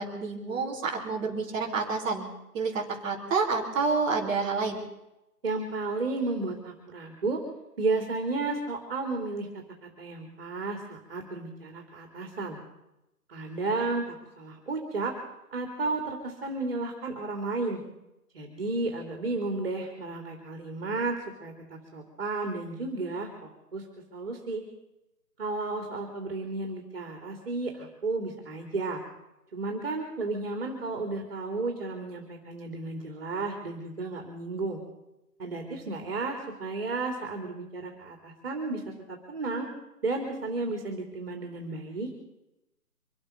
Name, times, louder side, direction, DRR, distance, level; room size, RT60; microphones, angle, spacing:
voice 1, 0.0-2.3 2.5-4.8, right 4 dB, 10° right, -5 dB, 3.1 m, -29 dB
voice 2, 5.4-7.4 7.8-12.6 13.3-15.1 15.5-17.8 18.3-23.8 24.1-24.6 25.4-29.0 29.5-34.8 35.4-39.7 40.0-42.1, right 3 dB, 40° right, 3 dB, 3.2 m, -33 dB
26.5 x 8.8 x 5.3 m, 0.92 s
figure-of-eight pair, 155°, 47 cm